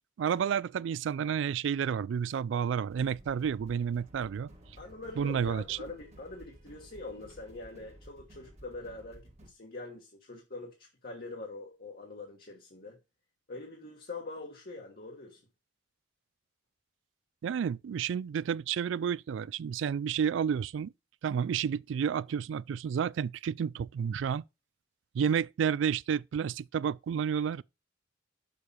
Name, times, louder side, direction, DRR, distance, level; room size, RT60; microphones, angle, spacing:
voice 1, 0.2-4.5 5.2-5.8 17.4-20.9 21.2-24.4 25.1-27.6, right 7 dB, 75° right, 0.3 m, -30 dB
sound 1, 2.9-9.5, equal, 35° right, 1.5 m, -54 dB
voice 2, 4.8-13.0 13.5-15.4, left 3 dB, 50° left, 1.4 m, -44 dB
6.7 x 4.8 x 5.4 m
head